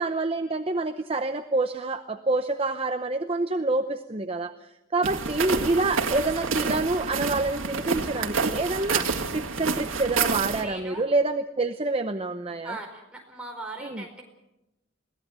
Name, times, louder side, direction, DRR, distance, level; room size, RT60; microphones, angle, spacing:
voice 1, 0.0-4.5 4.9-9.1 9.3-12.8 13.8-14.0, right 2 dB, 30° right, 8 dB, 0.7 m, -27 dB
sound 1, 5.0-10.6, right 5 dB, 90° right, 2.0 m, -28 dB
voice 2, 10.5-11.1 12.6-14.2, right 2 dB, 5° right, 0 dB, 4.7 m, -39 dB
22.0 x 17.0 x 8.2 m, 0.91 s
head